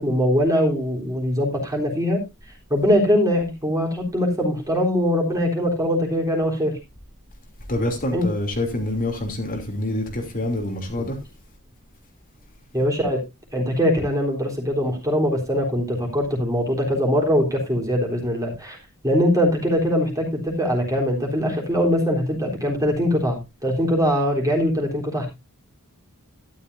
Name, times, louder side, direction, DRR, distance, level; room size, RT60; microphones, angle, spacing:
voice 1, 0.0-2.2 2.7-6.8 8.1-8.2 10.9-11.0 12.7-13.2 13.5-18.8 19.0-25.3, equal, 15° right, 3.6 m, -22 dB
voice 2, 7.7-11.2, left 1 dB, 40° left, 2.9 m, -26 dB
12.5 x 11.5 x 2.6 m
head